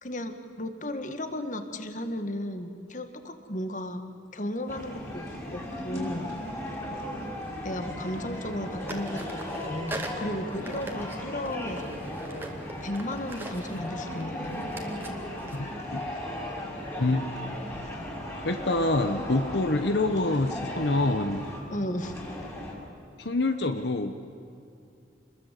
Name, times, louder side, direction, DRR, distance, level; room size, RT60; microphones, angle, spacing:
voice 1, 0.0-4.0 4.3-5.3 5.5-6.3 7.6-11.9 12.8-14.7 21.7-22.1, left 1 dB, 45° left, 8 dB, 1.9 m, -34 dB
sound 1, 4.7-21.6 22.0-22.7, left 1 dB, 15° left, 5.7 m, -36 dB
sound 2, 4.7-4.9 6.3-7.6 7.8-8.6 8.9-16.6, right 1 dB, 10° right, 2.4 m, -43 dB
voice 2, 15.5-16.1 17.0-17.3 17.7-17.9 18.4-21.5 23.2-24.1, left 2 dB, 70° left, 7 dB, 1.1 m, -26 dB
27.5 x 21.5 x 8.4 m, 2.6 s
head